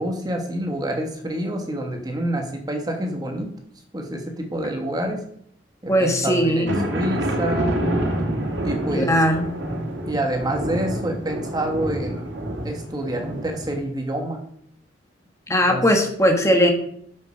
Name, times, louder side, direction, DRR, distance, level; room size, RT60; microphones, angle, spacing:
voice 1, 0.0-3.5 3.9-5.2 5.8-7.7 8.6-9.2 10.1-12.3 12.6-14.4 15.7-15.9, right 1 dB, 20° right, 3 dB, 1.3 m, -27 dB
voice 2, 5.9-6.9 8.9-9.5 15.5-16.7, equal, 15° left, 4 dB, 1.5 m, -19 dB
sound 1, 6.7-13.8, right 1 dB, 80° right, 2.0 m, -27 dB
6.8 x 6.5 x 6.2 m, 0.66 s
head